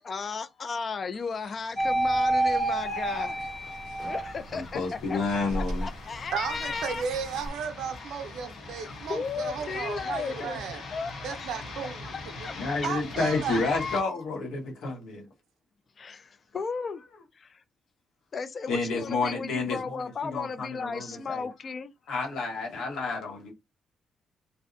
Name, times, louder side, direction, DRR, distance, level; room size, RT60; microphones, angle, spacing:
voice 1, 0.0-3.5 4.0-4.8 5.1-5.2 5.5-7.0 8.8-10.6 10.9-11.5 12.4-12.5 13.5-14.0 16.0-17.0 17.3-17.6 18.3-21.9, left 5 dB, 40° left, 0.4 m, -35 dB
sound 1, 1.5-14.0, left 2 dB, 65° left, 0.8 m, -43 dB
sound 2, 1.8-4.6 5.1-7.5, right 2 dB, 25° left, 1.0 m, -29 dB
voice 2, 4.5-5.9 10.1-10.2 12.0-12.1 12.6-15.2 18.7-21.5 22.1-23.5, left 3 dB, 80° left, 1.1 m, -30 dB
voice 3, 6.3-10.8 11.2-12.1 12.8-13.6, right 6 dB, 80° right, 0.5 m, -34 dB
2.5 x 2.0 x 2.4 m
cardioid pair, 90°, 0 cm